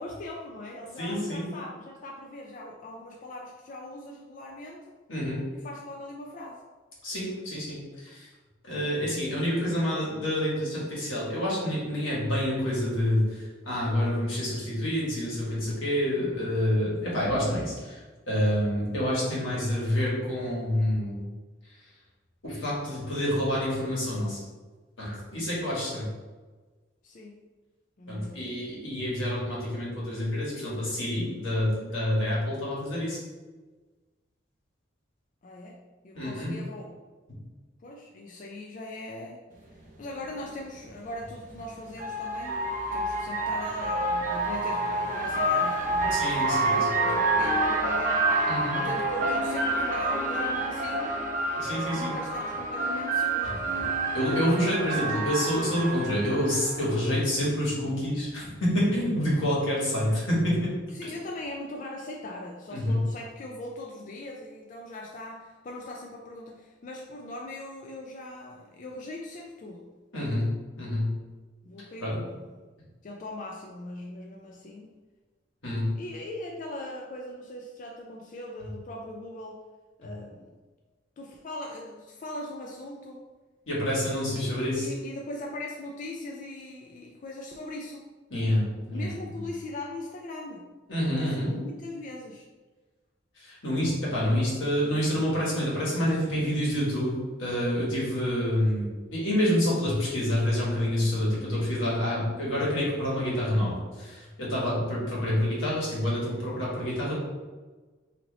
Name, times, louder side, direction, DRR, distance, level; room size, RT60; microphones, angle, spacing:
voice 1, 0.0-5.0 5.5-6.6 16.1-16.4 27.0-27.4 28.0-28.5 35.4-37.0 37.8-39.4 39.7-48.5 48.7-51.2 51.9-54.0 60.9-69.9 71.6-72.5 73.0-74.9 75.9-79.6 80.0-80.5 81.2-83.3 84.8-88.1 88.9-92.5 94.2-94.5 101.5-101.7, left 1 dB, 40° left, -1 dB, 0.3 m, -40 dB
voice 2, 1.0-1.4 5.1-5.4 7.0-8.3 8.6-21.2 22.4-24.4 25.0-26.1 28.1-33.2 36.1-36.5 46.1-47.0 48.5-48.8 51.6-52.1 53.4-53.5 54.1-60.7 61.0-61.1 62.7-63.0 70.1-70.5 70.8-71.1 72.0-72.1 75.6-75.9 83.7-84.9 88.3-89.4 90.9-91.5 93.4-97.1 97.4-107.1, equal, 85° left, -6 dB, 1.5 m, -28 dB
sound 1, 39.8-39.9 41.3-56.9, right 2 dB, 45° right, 0.5 m, -28 dB
3.0 x 2.8 x 3.8 m, 1.3 s
head